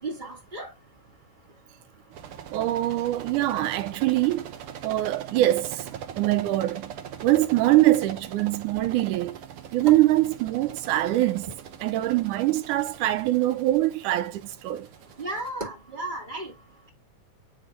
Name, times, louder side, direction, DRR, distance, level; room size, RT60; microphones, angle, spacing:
voice 1, 0.0-0.7 15.2-16.5, right 2 dB, 20° right, 1.5 m, -34 dB
sound 1, 2.1-15.5, right 9 dB, 70° right, 1.4 m, -41 dB
voice 2, 2.5-4.5 4.8-5.9 6.2-6.9 7.2-9.4 9.7-11.5 11.8-14.9, right 15 dB, 85° right, 2.2 m, -23 dB
9.0 x 3.2 x 3.7 m
omnidirectional pair, 3.6 m